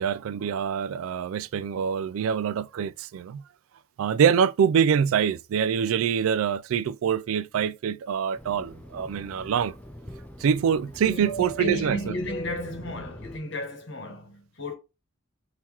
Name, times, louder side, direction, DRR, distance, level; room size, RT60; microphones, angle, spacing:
voice 1, 0.0-3.4 4.0-9.7 10.4-12.0, right 7 dB, 80° right, 0.3 m, -25 dB
Fixed-wing aircraft airplane, 8.3-13.4, right 1 dB, 5° left, 0.4 m, -41 dB
voice 2, 11.0-14.8, left 1 dB, 60° left, 1.1 m, -33 dB
3.7 x 2.8 x 2.9 m
head